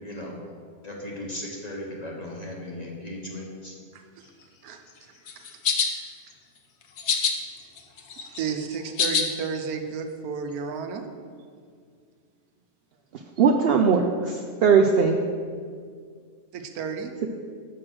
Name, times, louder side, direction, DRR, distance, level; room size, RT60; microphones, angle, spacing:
voice 1, 0.0-0.4 0.8-3.7, left 1 dB, 35° left, -2 dB, 0.9 m, -36 dB
voice 2, 3.9-4.3 4.6-4.8 5.4-5.5 8.2-11.1 16.5-17.1, right 6 dB, 90° right, 6 dB, 1.2 m, -32 dB
sound 1, 5.3-5.9 7.0-7.3 7.8-9.2, left 6 dB, 60° left, 0.9 m, -24 dB
voice 3, 13.4-15.2, right 5 dB, 70° right, 2 dB, 0.5 m, -19 dB
6.2 x 5.8 x 6.0 m, 2.1 s
omnidirectional pair, 1.5 m